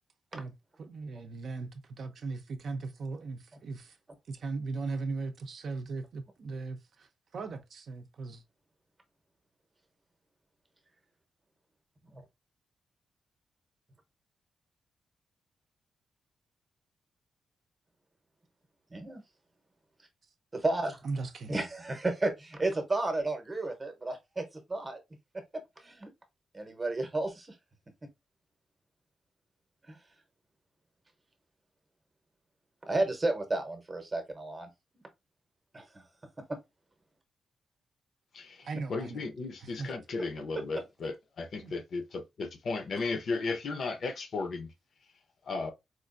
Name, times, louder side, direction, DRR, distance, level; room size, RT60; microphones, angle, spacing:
voice 1, 0.8-4.0 4.3-8.4 21.0-21.7 38.6-39.3 39.6-39.9 41.6-41.7, right 3 dB, 55° right, 0.6 m, -38 dB
voice 2, 18.9-19.2 20.5-21.0 21.5-24.4 24.7-25.0 25.8-26.1 26.5-27.6 29.9-30.0 32.8-34.7 35.7-36.0 36.5-36.6, right 2 dB, 20° right, 0.8 m, -32 dB
voice 3, 38.3-44.7 45.4-45.7, left 3 dB, 50° left, 0.6 m, -35 dB
4.4 x 2.4 x 2.5 m
wide cardioid pair, 155°, 0 cm